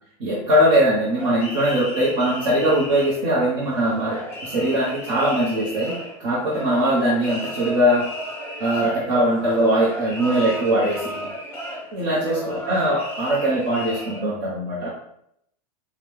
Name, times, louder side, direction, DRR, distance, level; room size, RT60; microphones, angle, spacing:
voice 1, 0.2-8.0 8.6-11.3 11.9-14.9, right 1 dB, 35° right, -7 dB, 1.1 m, -21 dB
sound 1, 1.2-14.2, equal, 10° left, 0.9 m, -34 dB
5.0 x 2.4 x 3.6 m, 0.73 s
supercardioid pair, 180°, 19 cm